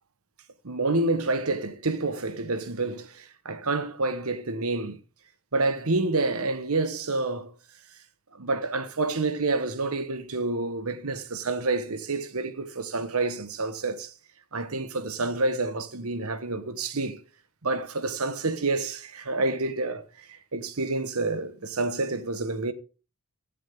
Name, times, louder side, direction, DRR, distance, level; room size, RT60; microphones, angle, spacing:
voice 1, 0.6-5.0 5.5-7.5 8.3-14.1 14.5-17.2 17.6-22.7, right 3 dB, 75° right, 1.3 m, -28 dB
15.5 x 7.5 x 3.7 m
head